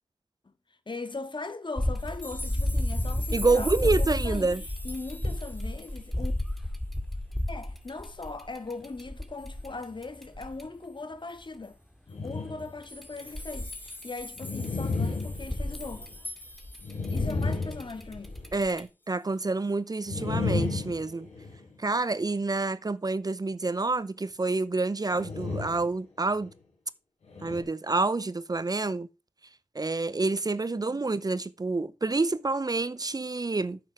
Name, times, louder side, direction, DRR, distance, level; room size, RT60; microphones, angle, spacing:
voice 1, 0.7-4.5 4.8-6.3 7.5-11.8 12.2-16.1 17.1-18.3 30.7-31.1, left 3 dB, 50° left, 1.8 m, -39 dB
sound 1, 1.8-10.6 12.8-14.6 14.9-18.8, left 1 dB, ahead, 2.2 m, -32 dB
sound 2, 2.0-6.5 6.9-7.0 7.4-7.5 7.8-8.3 9.4-9.6 11.3-11.4 11.6-11.7 12.6-17.5 18.0-18.1, left 1 dB, 20° left, 1.9 m, -43 dB
voice 2, 3.3-4.6 18.5-21.3 21.8-26.5 27.4-29.1 29.7-33.8, right 3 dB, 35° right, 0.7 m, -28 dB
sound 3, 12.1-12.8 13.3-13.4 14.4-16.2 16.8-18.6 20.1-21.8 25.1-25.9 26.4-26.5 27.3-27.6, left 3 dB, 90° left, 4.1 m, -33 dB
9.0 x 7.8 x 4.8 m
cardioid pair, 40°, 11 cm